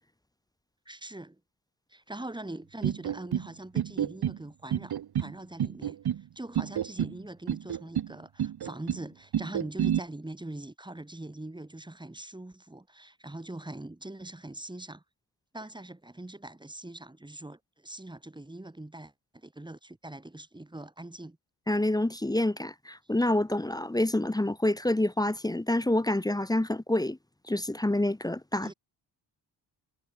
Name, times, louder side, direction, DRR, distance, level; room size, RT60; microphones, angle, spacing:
voice 1, 0.9-1.4 1.9-6.0 6.4-15.0 15.5-21.4 28.6-28.7, right 1 dB, 10° right, 4.1 m, -42 dB
sound 1, 2.8-3.5 3.8-4.4 4.7-5.3 5.6-6.2 6.6-7.2 7.5-8.1 8.4-9.0 9.3-10.0, right 10 dB, 60° right, 1.3 m, -29 dB
voice 2, 21.7-27.2 27.5-28.7, left 1 dB, 10° left, 1.0 m, -27 dB
wide cardioid pair, 140°, 42 cm